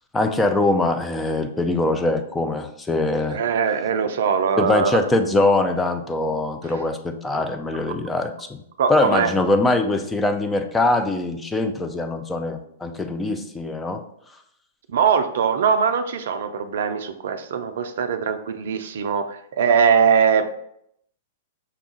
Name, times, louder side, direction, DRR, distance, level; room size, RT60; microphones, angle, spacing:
voice 1, 0.1-3.4 4.6-8.6 8.9-14.0, left 2 dB, 10° left, 6 dB, 0.5 m, -22 dB
voice 2, 3.3-5.0 8.8-9.3 14.9-20.5, right 6 dB, 65° right, 9 dB, 0.4 m, -21 dB
5.6 x 2.4 x 3.8 m, 0.72 s
hypercardioid pair, 110°, 0 cm